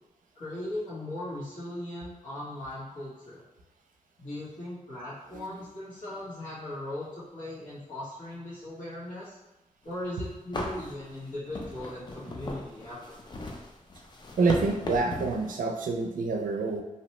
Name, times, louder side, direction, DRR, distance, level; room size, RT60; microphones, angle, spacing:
voice 1, 0.3-3.4 4.2-9.4 9.8-13.1, left 1 dB, 90° left, -9 dB, 1.3 m, -38 dB
sound 1, 10.0-10.1 10.5-15.5, left 2 dB, 35° left, 0.4 m, -37 dB
voice 2, 14.4-16.8, right 4 dB, 85° right, 3 dB, 0.4 m, -27 dB
2.7 x 2.1 x 2.9 m, 1.0 s
wide cardioid pair, 85°, 13 cm